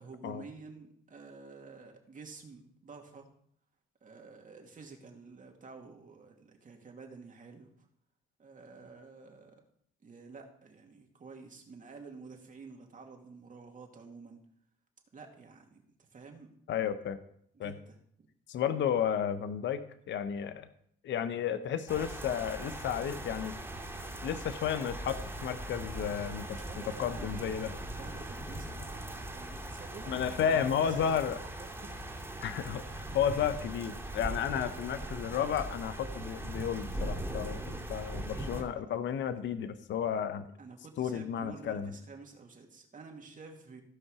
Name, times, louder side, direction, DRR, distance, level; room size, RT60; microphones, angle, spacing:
voice 1, 0.0-3.3 4.0-7.7 8.4-9.6 10.0-14.4 15.1-16.6 17.5-18.3 26.5-31.3 31.6-32.2 38.5-38.7 40.6-43.8, right 4 dB, 40° right, 2 dB, 2.3 m, -50 dB
voice 2, 16.7-17.2 17.6-17.7 18.5-19.8 20.1-20.7 21.0-23.5 24.2-26.6 27.0-27.7 30.1-31.4 32.4-32.8 33.1-40.5 41.0-41.9, left 8 dB, 70° left, 11 dB, 0.8 m, -32 dB
sound 1, 21.9-38.6, right 1 dB, 10° right, 2.5 m, -40 dB
15.5 x 5.5 x 4.9 m, 0.67 s
cardioid pair, 90°, 20 cm